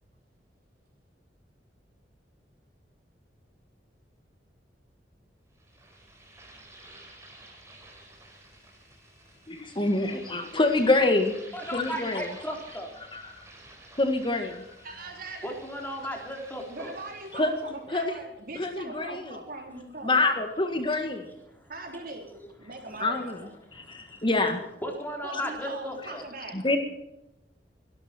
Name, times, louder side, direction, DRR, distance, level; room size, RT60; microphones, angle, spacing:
sound 1, 5.6-17.8, right 2 dB, 15° right, 4.5 m, -51 dB
voice 1, 9.5-11.4 11.7-12.3 13.1-13.4 14.0-14.7 17.3-17.5 17.9-18.2 18.6-19.4 20.0-21.2 23.0-23.4 23.8-24.6 25.3-25.4 26.5-26.8, left 2 dB, 30° left, 6 dB, 1.8 m, -26 dB
voice 2, 11.5-12.9 15.4-16.9 21.5-21.6 23.7-24.2 24.4-26.2, equal, 10° left, 2 dB, 3.7 m, -36 dB
voice 3, 14.8-15.5 16.6-20.2 20.9-21.0 21.7-22.3 22.6-23.5 25.2-26.6, right 2 dB, 55° right, 2 dB, 3.9 m, -41 dB
24.0 x 12.0 x 4.5 m, 0.88 s
head